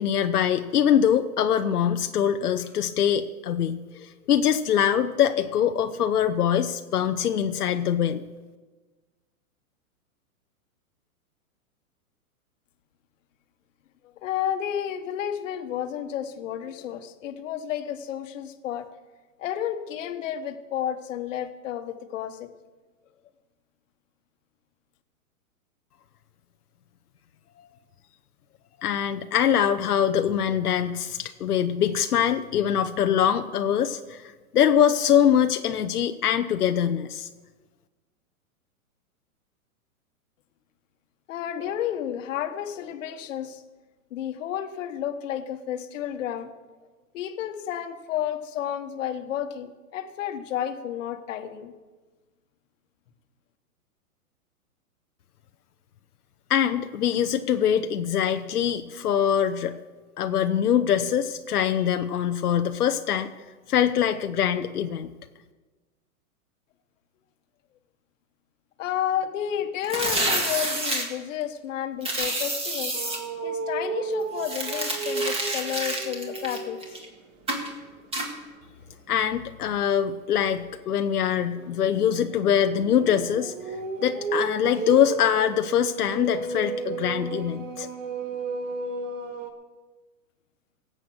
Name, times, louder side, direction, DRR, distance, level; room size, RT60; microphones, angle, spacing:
voice 1, 0.0-8.2 28.8-37.3 56.5-59.8 60.2-63.3 63.7-65.1 79.1-83.5 84.0-87.9, left 9 dB, 90° left, 7 dB, 0.8 m, -23 dB
voice 2, 14.2-18.9 19.4-22.5 41.3-43.6 44.1-46.5 47.1-51.7 68.8-73.0 73.4-76.8, left 10 dB, 55° left, 9 dB, 1.3 m, -31 dB
sound 1, 69.8-71.1 72.0-73.2 74.4-77.0 77.5-77.7 78.1-78.3, right 1 dB, 15° right, 1.8 m, -28 dB
sound 2, 72.9-77.1 77.5-77.8 80.3-89.5, right 4 dB, 60° right, 1.6 m, -34 dB
17.0 x 7.8 x 6.3 m, 1.3 s
hypercardioid pair, 135°, 44 cm